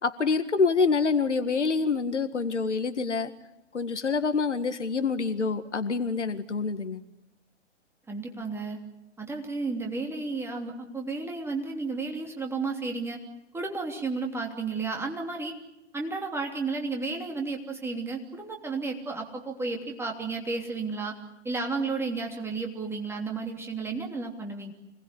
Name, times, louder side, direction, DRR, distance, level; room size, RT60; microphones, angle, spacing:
voice 1, 0.0-3.3 3.7-7.0, left 4 dB, 75° left, 10 dB, 2.0 m, -26 dB
voice 2, 8.1-8.8 9.2-13.2 13.5-15.5 15.9-21.1 21.4-24.7, right 3 dB, 5° right, 2 dB, 3.1 m, -32 dB
26.0 x 19.5 x 9.9 m, 0.94 s
figure-of-eight pair, 115°, 36 cm